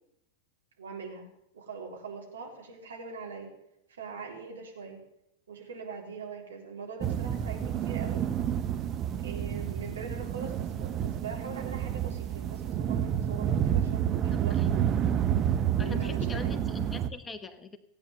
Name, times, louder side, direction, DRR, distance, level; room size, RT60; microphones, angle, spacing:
voice 1, 0.8-1.3 1.5-3.5 3.9-5.0 5.5-8.2 9.2-14.7 15.8-16.6, right 5 dB, 65° right, 0 dB, 3.8 m, -42 dB
sound 1, 7.0-17.1, right 9 dB, 30° right, 0.8 m, -29 dB
voice 2, 14.3-14.8 15.8-17.8, left 4 dB, 15° left, 10 dB, 1.1 m, -42 dB
16.5 x 9.1 x 7.8 m, 0.79 s
figure-of-eight pair, 90°, 0 cm